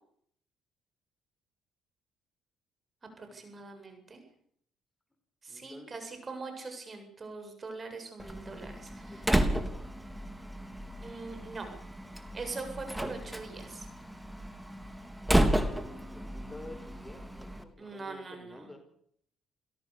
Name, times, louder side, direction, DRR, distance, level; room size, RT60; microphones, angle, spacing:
voice 1, 3.2-4.2 5.4-9.3 11.0-11.7 12.3-13.9 17.8-18.7, right 3 dB, 35° right, 6 dB, 7.8 m, -42 dB
voice 2, 5.5-5.9 9.1-9.6 15.2-18.8, left 1 dB, 15° left, 7 dB, 5.2 m, -50 dB
Slam, 8.2-17.6, right 1 dB, 5° right, 3.2 m, -32 dB
28.0 x 17.5 x 7.0 m, 0.66 s
hypercardioid pair, 55°, 0 cm